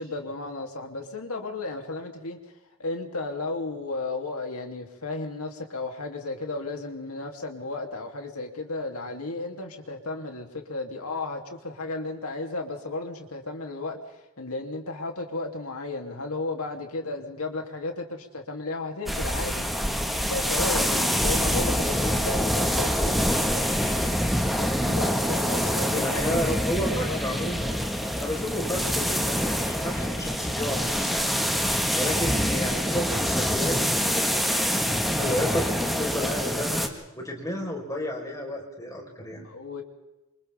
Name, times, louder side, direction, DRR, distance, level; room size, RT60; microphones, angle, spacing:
voice 1, 0.0-2.4 2.8-19.6 20.3-23.7 24.6-26.8 27.1-27.6 39.0-39.8, left 2 dB, 85° left, 2 dB, 3.1 m, -34 dB
sound 1, 19.1-36.9, equal, ahead, 1.7 m, -25 dB
voice 2, 25.6-27.8 28.1-31.4 31.9-36.9 37.1-39.4, equal, 15° left, 0 dB, 4.6 m, -32 dB
29.0 x 26.0 x 3.6 m, 1.0 s
head